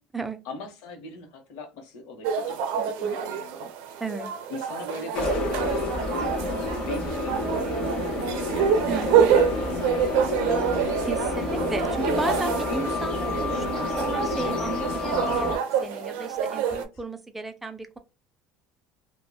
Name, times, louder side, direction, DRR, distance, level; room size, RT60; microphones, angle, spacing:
voice 1, 0.4-4.0 4.5-5.3 6.1-6.3 6.8-11.5 16.6-16.9, left 3 dB, 75° left, 0.8 m, -40 dB
sound 1, 2.2-16.9, right 7 dB, 70° right, 0.5 m, -27 dB
voice 2, 2.8-3.2 4.0-4.3 8.9-9.4 11.0-16.6 17.0-18.0, right 3 dB, 5° right, 0.3 m, -34 dB
sound 2, 5.1-15.6, left 2 dB, 35° left, 0.7 m, -29 dB
2.6 x 2.1 x 2.2 m
cardioid pair, 175°, 3 cm